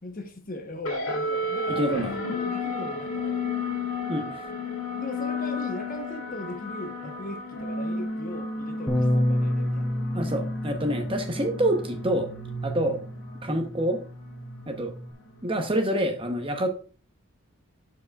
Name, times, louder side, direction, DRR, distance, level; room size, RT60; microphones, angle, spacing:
voice 1, 0.0-3.4 5.0-9.9 12.8-13.0, left 1 dB, 40° left, 0.9 m, -39 dB
sound 1, 0.8-15.6, left 2 dB, 65° left, 1.9 m, -33 dB
voice 2, 1.7-2.2 4.1-4.3 10.1-12.3 12.6-13.0 13.4-14.0 14.7-14.9 15.4-16.7, right 1 dB, 25° right, 0.8 m, -26 dB
Bass guitar, 8.9-15.1, left 1 dB, 10° left, 0.7 m, -30 dB
12.0 x 5.0 x 2.3 m
head